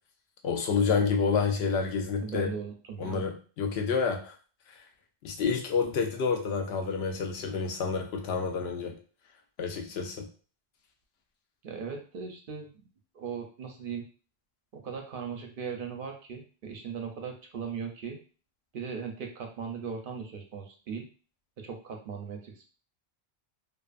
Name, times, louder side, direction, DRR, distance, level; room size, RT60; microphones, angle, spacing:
voice 1, 0.4-2.5 3.0-4.3 5.2-8.9 9.6-10.3, left 5 dB, 80° left, 3 dB, 0.8 m, -29 dB
voice 2, 2.2-3.2 11.6-12.9 13.1-14.0 14.8-18.2 18.7-21.1 21.6-22.6, right 6 dB, 65° right, 2 dB, 0.7 m, -38 dB
2.5 x 2.3 x 2.4 m, 0.38 s
omnidirectional pair, 1.0 m